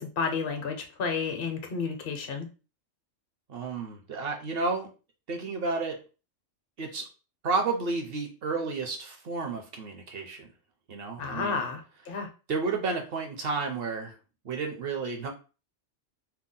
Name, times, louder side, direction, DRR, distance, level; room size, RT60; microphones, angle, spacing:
voice 1, 0.0-2.5 11.2-12.3, left 5 dB, 55° left, 4 dB, 0.8 m, -31 dB
voice 2, 3.5-4.9 5.3-6.0 6.8-7.1 7.4-10.5 10.9-11.6 12.5-14.2 14.4-15.3, right 4 dB, 55° right, 3 dB, 0.8 m, -31 dB
2.8 x 2.0 x 3.8 m, 0.33 s
omnidirectional pair, 1.3 m